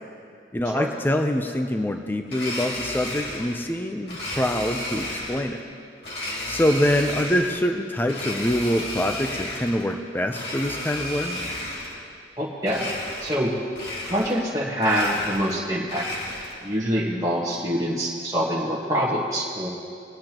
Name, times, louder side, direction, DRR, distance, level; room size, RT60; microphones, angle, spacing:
voice 1, 0.5-5.6 6.5-11.4, left 1 dB, 10° left, 5 dB, 0.5 m, -25 dB
Domestic sounds home sounds, 2.3-3.6 4.1-5.5 6.0-7.6 8.0-9.9 10.3-12.0 12.6-13.5 13.7-14.5 14.8-16.6, left 1 dB, 60° left, 2.3 m, -33 dB
voice 2, 12.4-12.9 13.2-13.5 14.0-16.1 16.6-19.7, equal, 20° right, -6 dB, 1.3 m, -25 dB
21.0 x 10.0 x 3.0 m, 2.4 s
head